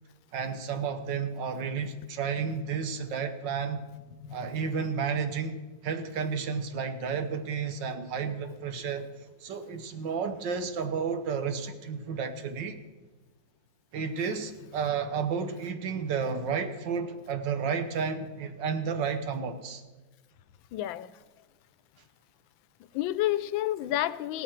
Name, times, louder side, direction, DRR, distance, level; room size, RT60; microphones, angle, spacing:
voice 1, 0.3-3.8 4.3-9.1 9.4-12.8 13.9-19.8, right 6 dB, 70° right, 8 dB, 1.7 m, -32 dB
voice 2, 4.2-4.6 20.7-21.1 22.9-24.4, left 14 dB, 90° left, 16 dB, 1.4 m, -30 dB
16.5 x 12.5 x 4.5 m, 1.2 s
omnidirectional pair, 2.1 m